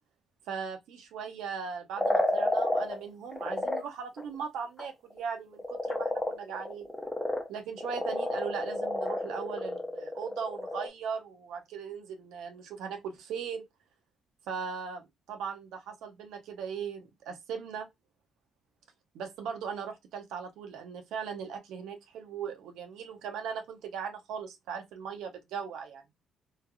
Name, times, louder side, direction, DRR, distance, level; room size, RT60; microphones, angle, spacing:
voice 1, 0.5-6.9 7.5-13.6 14.5-17.9 19.1-26.0, right 6 dB, 85° right, 0.6 m, -38 dB
sound 1, 2.0-3.0 3.3-3.8 4.2-4.4 4.8-4.9 5.1-5.2 5.5-7.5 7.8-10.9, left 1 dB, 10° left, 0.9 m, -30 dB
3.1 x 2.3 x 2.3 m
cardioid pair, 90°, 0 cm